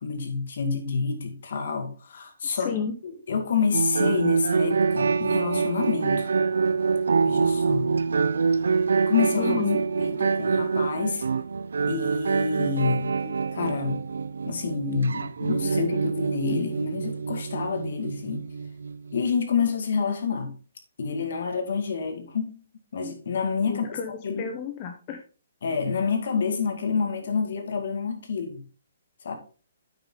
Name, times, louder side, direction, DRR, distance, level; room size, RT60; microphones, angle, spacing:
voice 1, 0.0-2.7 3.0-6.3 7.2-8.0 9.1-9.6 9.9-11.2 11.9-13.1 13.5-14.0 14.5-18.4 19.1-20.6 21.0-22.6 22.9-23.9 24.2-24.5 25.6-28.6 29.2-29.3, left 5 dB, 60° left, 2.1 m, -28 dB
voice 2, 2.5-2.9 9.4-9.8 13.2-13.4 23.7-25.2, left 7 dB, 25° left, 0.8 m, -31 dB
sound 1, 3.7-19.2, right 5 dB, 90° right, 0.5 m, -25 dB
8.8 x 6.3 x 3.8 m
hypercardioid pair, 170°, 0 cm